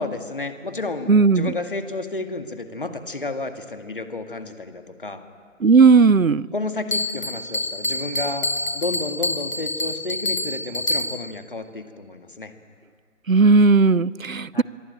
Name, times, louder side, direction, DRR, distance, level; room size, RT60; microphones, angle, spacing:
voice 1, 0.0-5.2 6.5-8.5 8.7-12.5 14.5-14.6, left 3 dB, 40° left, 7 dB, 2.1 m, -31 dB
voice 2, 1.1-1.5 5.6-6.5 13.3-14.6, right 4 dB, 80° right, 22 dB, 0.8 m, -15 dB
Bell, 6.9-11.4, left 1 dB, 75° left, 1.7 m, -27 dB
25.5 x 22.5 x 9.0 m, 2.1 s
figure-of-eight pair, 160°, 40 cm